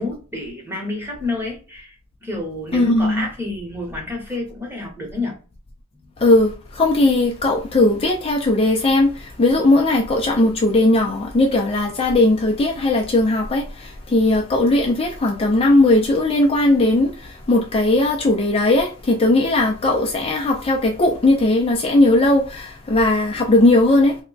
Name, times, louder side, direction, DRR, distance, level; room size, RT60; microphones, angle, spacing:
voice 1, 0.0-1.9 2.2-5.3 6.0-6.1, left 2 dB, 10° right, 1.0 m, -29 dB
voice 2, 2.7-3.3 6.2-24.2, left 2 dB, 25° left, 0.4 m, -18 dB
3.4 x 2.2 x 3.9 m
head